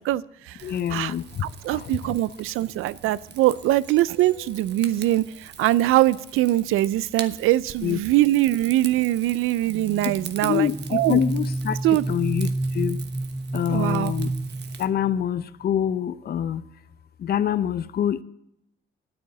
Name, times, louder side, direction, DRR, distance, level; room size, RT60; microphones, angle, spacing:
voice 1, 0.0-0.6 0.9-1.1 1.4-11.2 11.8-12.0 13.7-14.1, right 15 dB, 85° right, 0.5 m, -22 dB
voice 2, 0.6-2.1 7.8-8.0 10.4-13.0 13.5-14.3 14.8-16.6 17.2-18.2, left 9 dB, 50° left, 0.6 m, -26 dB
Rain / Fire, 0.6-14.9, right 7 dB, 55° right, 1.2 m, -43 dB
sound 1, 9.7-15.2, right 2 dB, 10° right, 0.4 m, -30 dB
9.9 x 8.8 x 7.2 m
cardioid pair, 85°, 21 cm